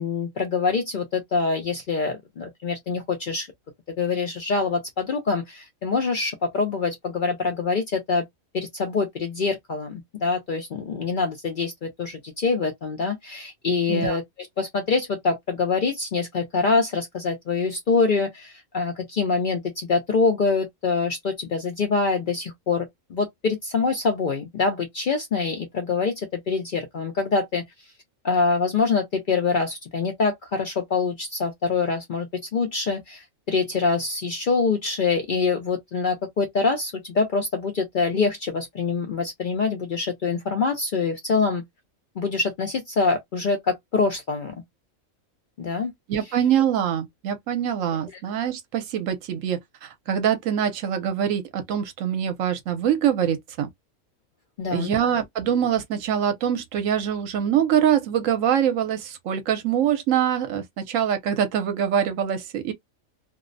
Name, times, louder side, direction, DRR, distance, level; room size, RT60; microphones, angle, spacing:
voice 1, 0.0-3.5 4.0-8.2 8.5-14.2 14.6-27.6 28.2-41.6 42.2-44.6 45.6-45.9 54.6-54.9, left 4 dB, 65° left, 0.5 m, -25 dB
voice 2, 46.1-53.7 54.7-62.7, right 9 dB, 70° right, 1.0 m, -24 dB
2.5 x 2.0 x 2.5 m
omnidirectional pair, 1.5 m